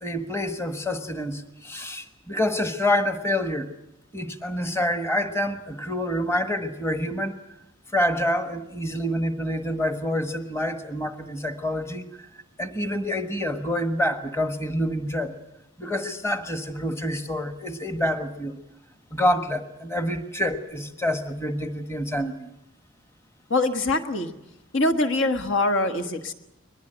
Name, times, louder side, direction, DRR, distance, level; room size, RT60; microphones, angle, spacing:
voice 1, 0.0-3.7 4.1-7.4 7.9-12.3 12.6-15.4 15.8-18.6 19.1-22.5, left 1 dB, 10° left, 7 dB, 1.3 m, -27 dB
voice 2, 23.5-24.3 24.7-26.3, left 2 dB, 65° left, 8 dB, 1.5 m, -23 dB
23.0 x 20.0 x 8.0 m, 0.89 s
head